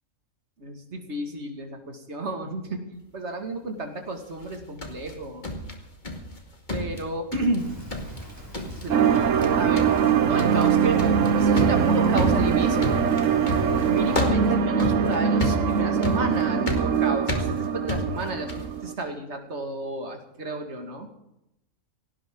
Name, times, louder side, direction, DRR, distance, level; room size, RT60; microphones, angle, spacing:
voice 1, 0.6-5.4 6.7-7.7 8.8-9.3 9.6-9.9 10.2-13.1 13.9-21.1, right 2 dB, 55° right, 4 dB, 2.4 m, -31 dB
sound 1, 4.4-6.4 6.7-7.6 7.9-8.3 8.5-8.9 9.1-9.5 9.8-18.8, left 1 dB, 35° left, 2.3 m, -31 dB
Rain, 7.6-14.3, equal, 15° right, 5.3 m, -41 dB
sound 2, 8.9-18.9, right 7 dB, 75° right, 1.3 m, -22 dB
17.5 x 17.5 x 3.8 m, 0.85 s
omnidirectional pair, 1.4 m